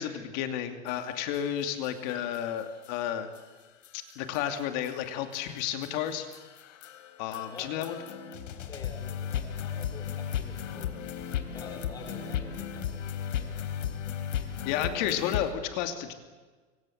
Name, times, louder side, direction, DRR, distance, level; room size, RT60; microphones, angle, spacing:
voice 1, 0.0-3.3 3.9-6.3 7.2-8.0 14.6-16.1, left 10 dB, 35° left, 7 dB, 2.7 m, -32 dB
sound 1, 0.9-1.0 1.3-1.4 1.8-1.9 2.3-2.4 2.8-2.9 3.3-3.4 3.8-15.5, left 9 dB, 80° left, 3.9 m, -36 dB
voice 2, 8.7-11.0 11.5-13.5, left 3 dB, 10° left, 5 dB, 4.1 m, -47 dB
25.5 x 25.5 x 7.9 m, 1.4 s
supercardioid pair, 175°, 37 cm